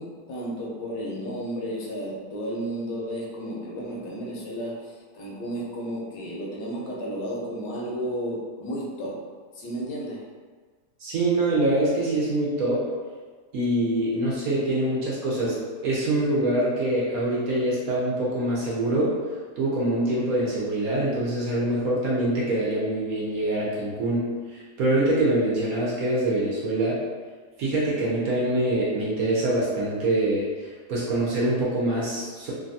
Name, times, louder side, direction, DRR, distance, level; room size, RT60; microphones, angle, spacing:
voice 1, 0.0-9.2 9.5-10.3 26.8-26.9, equal, 80° left, -3 dB, 1.3 m, -33 dB
voice 2, 11.0-12.8 13.5-15.5 15.8-19.1 19.6-27.0 27.6-32.5, right 1 dB, 65° right, -6 dB, 1.0 m, -24 dB
3.2 x 2.2 x 2.6 m, 1.5 s
omnidirectional pair, 1.9 m